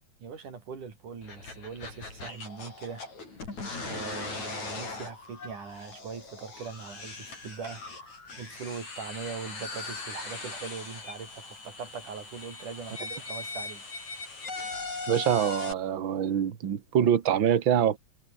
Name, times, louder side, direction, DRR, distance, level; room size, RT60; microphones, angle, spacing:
voice 1, 0.2-3.1 3.8-13.8, right 6 dB, 85° right, 5.5 m, -41 dB
sound 1, 1.2-15.7, left 3 dB, 65° left, 8.8 m, -40 dB
voice 2, 15.1-18.0, right 9 dB, 45° right, 2.2 m, -25 dB
omnidirectional pair, 3.5 m